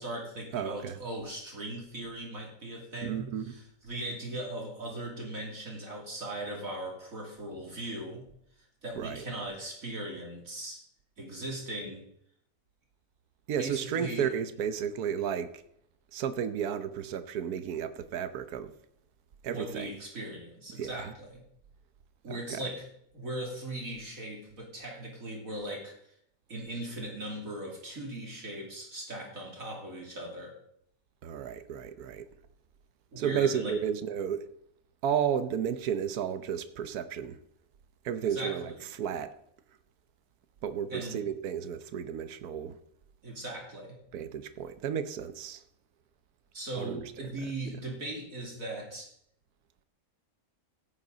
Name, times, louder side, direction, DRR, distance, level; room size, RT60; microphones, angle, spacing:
voice 1, 0.0-8.2 8.8-10.8 11.2-12.0 13.6-14.3 19.5-21.4 22.2-22.9 23.1-26.0 26.5-30.5 33.1-33.7 38.2-38.8 40.9-41.2 43.2-44.0 46.5-49.1, right 1 dB, 65° right, 3.2 m, -39 dB
voice 2, 0.5-1.0 3.0-3.6 9.0-9.2 13.5-15.6 16.1-18.7 19.4-19.9 20.8-21.1 22.3-22.7 31.2-32.3 33.2-34.5 35.0-37.4 38.0-39.3 40.6-42.8 44.1-45.6 46.7-47.1, right 8 dB, 85° right, 1.4 m, -33 dB
16.5 x 9.8 x 4.0 m
omnidirectional pair, 1.6 m